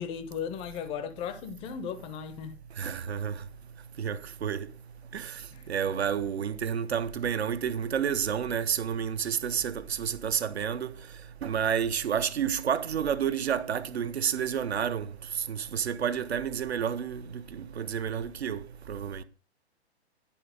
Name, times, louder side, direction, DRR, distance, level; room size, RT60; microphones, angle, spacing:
voice 1, 0.0-2.6 5.5-5.6, left 7 dB, 15° left, 0.5 m, -36 dB
voice 2, 2.8-3.3 4.0-4.7 5.1-5.3 5.7-10.9 11.4-15.1 15.5-18.6 18.9-19.2, right 8 dB, 70° right, 0.7 m, -30 dB
10.5 x 4.0 x 5.0 m
figure-of-eight pair, 110°, 34 cm